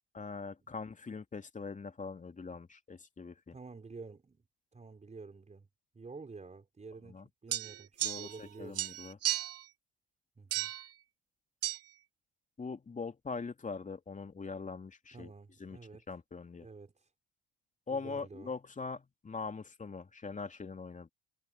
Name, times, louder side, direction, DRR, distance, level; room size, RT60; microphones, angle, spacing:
voice 1, 0.1-3.6 7.0-7.3 8.0-9.2 12.6-15.3 15.6-15.8 16.1-16.7 17.9-21.1, left 4 dB, 25° left, 3.0 m, -42 dB
voice 2, 3.5-4.4 4.7-5.7 5.9-7.9 8.2-8.8 10.4-10.7 15.1-16.0 16.6-17.1 17.9-18.5, right 4 dB, 25° right, 5.1 m, -49 dB
sound 1, 7.5-8.5 8.7-9.6 10.5-10.9 11.6-11.8, right 13 dB, 50° right, 2.5 m, -34 dB
hypercardioid pair, 60°, 30 cm